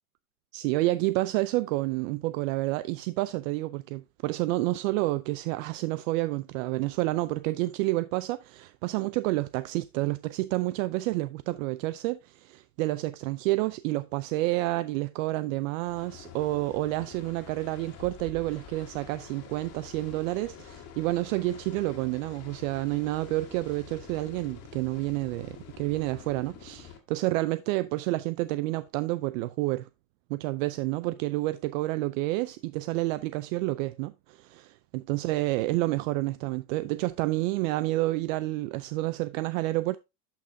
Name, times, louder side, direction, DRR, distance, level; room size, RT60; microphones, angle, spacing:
voice 1, 0.5-29.9 30.3-40.0, right 19 dB, 75° right, 0.5 m, -29 dB
sound 1, 15.8-27.0, left 8 dB, 35° left, 1.8 m, -47 dB
11.5 x 5.7 x 2.7 m
supercardioid pair, 160°, 40 cm